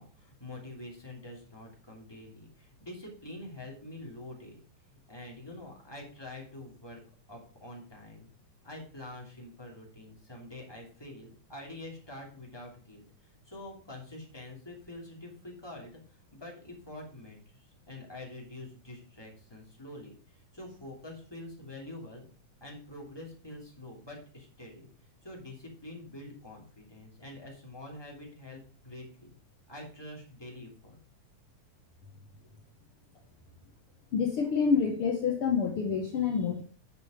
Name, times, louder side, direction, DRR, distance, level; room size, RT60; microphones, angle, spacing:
voice 1, 0.0-4.6 4.9-7.0 7.3-8.3 8.6-16.0 16.3-22.2 22.6-24.9 25.2-29.3 29.7-31.0, left 1 dB, 10° left, -2 dB, 2.3 m, -46 dB
voice 2, 34.1-36.6, left 6 dB, 60° left, 2 dB, 1.5 m, -27 dB
9.4 x 6.7 x 5.1 m, 0.39 s
omnidirectional pair, 3.9 m